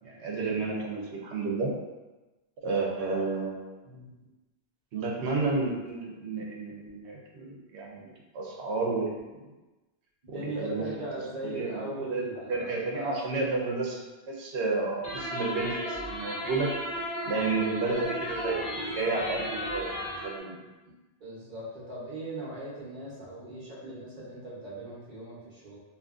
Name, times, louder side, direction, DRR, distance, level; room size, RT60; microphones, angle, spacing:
voice 1, 0.0-1.7 2.6-4.0 4.9-8.0 8.3-9.1 10.3-10.9 11.4-16.7 17.3-19.9 20.2-20.7, right 3 dB, 80° right, -2 dB, 0.9 m, -31 dB
voice 2, 10.3-13.4 20.8-20.9 21.2-25.8, right 2 dB, 45° right, -7 dB, 0.9 m, -39 dB
sound 1, 15.0-20.4, equal, 55° left, 0.7 m, -35 dB
2.7 x 2.4 x 2.4 m, 1.1 s
omnidirectional pair, 1.1 m